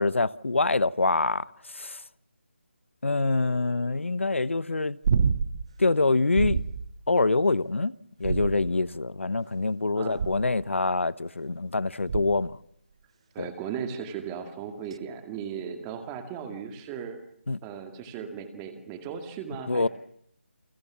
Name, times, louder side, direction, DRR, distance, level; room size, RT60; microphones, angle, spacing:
voice 1, 0.0-1.4 1.7-2.0 3.0-5.0 5.8-6.6 7.1-12.6 13.4-13.5 17.5-17.6 19.7-19.9, left 3 dB, 85° left, 1.1 m, -25 dB
sound 1, 5.0-5.7 6.4-6.9 8.2-8.9 10.2-10.6 12.1-12.5 14.9-15.0, right 6 dB, 30° right, 1.1 m, -27 dB
voice 2, 13.3-17.2 17.6-19.9, right 7 dB, 10° right, 2.2 m, -37 dB
29.0 x 24.0 x 7.2 m
figure-of-eight pair, 170°, 7 cm